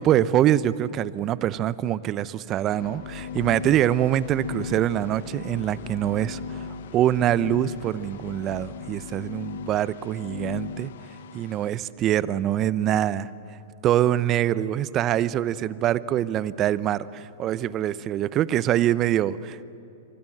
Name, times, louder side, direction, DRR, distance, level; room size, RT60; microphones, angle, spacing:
voice 1, 0.0-6.7 6.9-10.9 11.3-13.3 13.8-19.6, right 12 dB, 35° right, 17 dB, 0.8 m, -24 dB
sound 1, 2.6-11.7, left 6 dB, 65° left, 0.8 m, -38 dB
sound 2, 2.7-10.9, left 4 dB, 40° left, 3.9 m, -47 dB
27.5 x 25.0 x 7.9 m, 2.8 s
hypercardioid pair, 105°, 0 cm